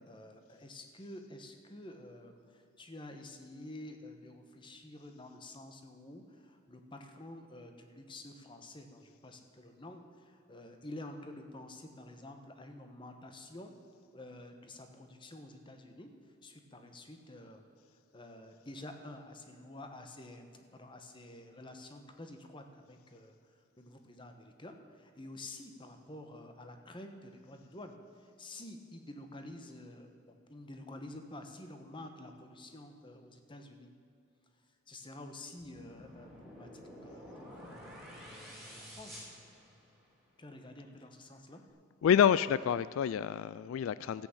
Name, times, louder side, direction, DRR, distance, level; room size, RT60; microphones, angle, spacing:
voice 1, 0.0-13.7 14.1-16.1 16.4-17.7 18.1-23.4 23.8-33.9 34.6-39.3 40.4-41.6, left 1 dB, 25° left, 6 dB, 1.1 m, -49 dB
sound 1, 35.6-40.2, equal, ahead, 3.1 m, -50 dB
voice 2, 42.0-44.3, left 8 dB, 80° left, 17 dB, 0.3 m, -28 dB
13.5 x 8.9 x 7.2 m, 2.4 s
head